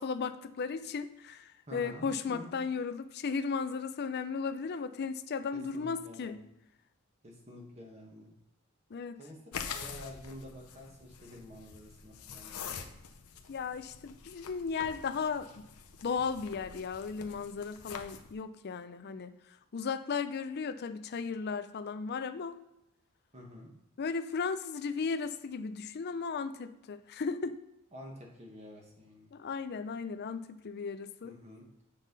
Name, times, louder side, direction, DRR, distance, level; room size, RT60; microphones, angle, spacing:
voice 1, 0.0-6.4 8.9-9.2 13.5-15.7 16.0-19.3 19.7-22.6 24.0-27.6 29.3-31.3, left 5 dB, 50° left, 11 dB, 0.4 m, -35 dB
voice 2, 1.7-2.5 5.5-6.4 7.2-8.3 9.2-9.4 9.7-13.0 23.3-23.7 27.9-29.3 31.2-31.6, left 1 dB, 30° right, -1 dB, 1.5 m, -49 dB
sound 1, 9.5-18.3, left 6 dB, 85° left, 0.7 m, -46 dB
7.3 x 5.4 x 4.0 m, 0.89 s
head